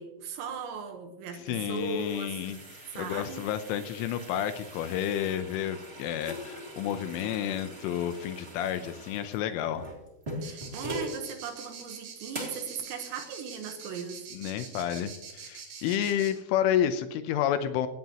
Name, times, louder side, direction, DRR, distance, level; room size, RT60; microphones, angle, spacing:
voice 1, 0.0-2.4 2.9-3.4 10.4-14.3 15.8-15.9, right 5 dB, 70° right, 5 dB, 3.1 m, -38 dB
sound 1, 1.3-11.2 11.7-11.8 12.3-12.7, equal, 30° right, 1.2 m, -42 dB
voice 2, 1.4-2.6 3.0-9.9 14.3-17.9, left 10 dB, 80° left, 10 dB, 3.1 m, -30 dB
sound 2, 10.4-16.3, right 6 dB, 55° right, 4.2 m, -44 dB
17.0 x 16.0 x 3.0 m, 0.94 s
omnidirectional pair, 6.0 m